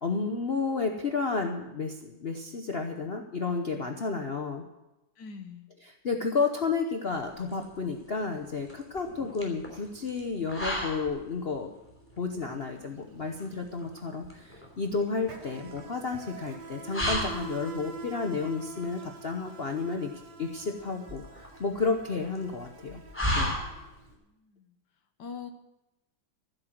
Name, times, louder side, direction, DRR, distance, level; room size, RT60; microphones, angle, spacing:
voice 1, 0.0-4.6 6.0-11.7 12.2-20.1 20.4-23.0 23.3-23.6, left 4 dB, 45° left, 4 dB, 0.9 m, -31 dB
voice 2, 5.2-5.7 24.2-24.8 25.2-25.5, left 6 dB, 65° left, 7 dB, 1.7 m, -43 dB
sound 1, 7.1-24.2, equal, 5° left, 2.9 m, -37 dB
Insect, 12.6-12.8 13.0-24.0, right 5 dB, 60° right, 2.0 m, -46 dB
15.0 x 7.9 x 7.7 m, 0.95 s
omnidirectional pair, 2.0 m